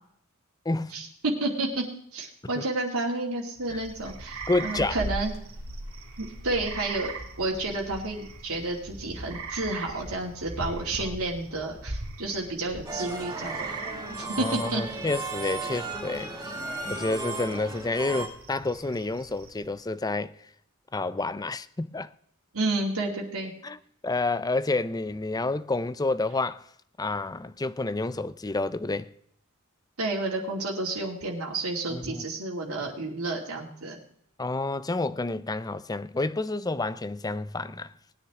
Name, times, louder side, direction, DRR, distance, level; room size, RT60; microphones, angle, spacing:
voice 1, 0.7-1.0 2.6-2.7 3.7-3.8 4.5-5.0 11.0-11.1 14.4-16.3 16.8-20.4 20.9-22.1 23.6-26.7 27.0-29.1 31.9-32.2 34.4-37.9, left 2 dB, 15° left, 0.5 m, -29 dB
voice 2, 1.4-1.9 2.1-5.3 6.2-7.1 7.4-13.8 14.2-14.8 22.5-23.5 30.0-34.0, right 2 dB, 90° right, 2.7 m, -31 dB
sound 1, 3.6-19.8, right 2 dB, 70° right, 2.3 m, -40 dB
sound 2, 12.9-18.3, right 3 dB, 20° right, 2.2 m, -35 dB
19.5 x 9.8 x 3.7 m
head